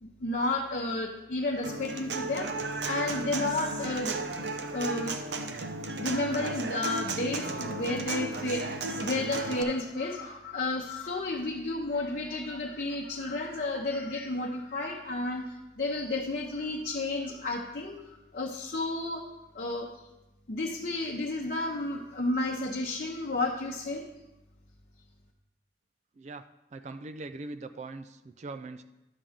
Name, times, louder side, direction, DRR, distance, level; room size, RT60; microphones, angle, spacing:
voice 1, 0.0-2.5 2.8-4.2 4.7-5.2 6.0-18.0 18.3-19.2 19.5-19.9 20.5-24.0, left 2 dB, 55° left, -2 dB, 0.8 m, -32 dB
Human voice / Acoustic guitar, 1.6-9.6, right 3 dB, 75° right, 0.7 m, -34 dB
voice 2, 26.7-28.8, right 3 dB, 40° right, 9 dB, 0.3 m, -41 dB
11.0 x 3.8 x 7.2 m, 0.98 s
head